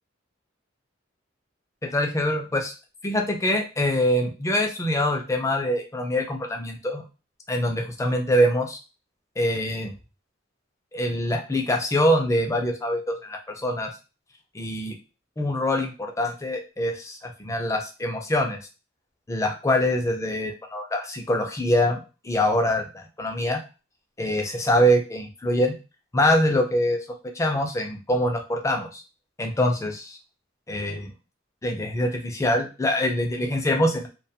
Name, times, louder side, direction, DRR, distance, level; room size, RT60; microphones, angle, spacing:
voice 1, 1.8-2.7 3.0-7.0 7.5-8.8 9.4-9.9 10.9-13.9 14.5-15.0 15.4-18.6 19.3-23.6 24.2-25.8 26.1-27.0 27.3-29.0 29.4-30.2 30.7-31.1 31.6-34.1, equal, 15° left, 3 dB, 0.4 m, -24 dB
2.3 x 2.2 x 2.7 m, 0.31 s
head